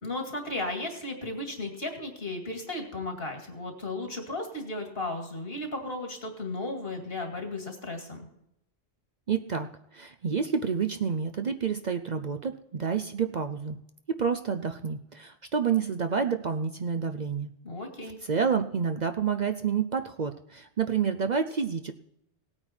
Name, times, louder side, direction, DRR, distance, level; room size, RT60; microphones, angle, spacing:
voice 1, 0.0-8.3 17.6-18.2, left 2 dB, 60° left, 4 dB, 2.5 m, -35 dB
voice 2, 9.3-13.8 14.1-17.5 18.3-21.9, right 6 dB, 50° right, 8 dB, 0.7 m, -29 dB
17.5 x 8.8 x 4.4 m, 0.80 s
omnidirectional pair, 1.1 m